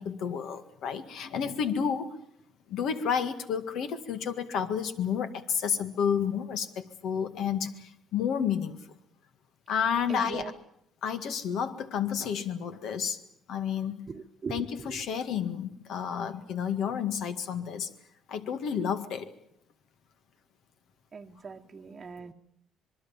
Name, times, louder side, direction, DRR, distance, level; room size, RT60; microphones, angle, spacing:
voice 1, 0.0-2.1 2.7-8.8 9.7-10.5 11.0-13.2 13.5-14.1 14.5-17.9 18.3-19.3, left 7 dB, 70° left, 9 dB, 1.9 m, -31 dB
voice 2, 10.1-10.5 14.1-15.0 21.1-22.3, right 5 dB, 30° right, 4 dB, 1.1 m, -40 dB
25.5 x 21.5 x 7.3 m, 0.72 s
cardioid pair, 120°, 0 cm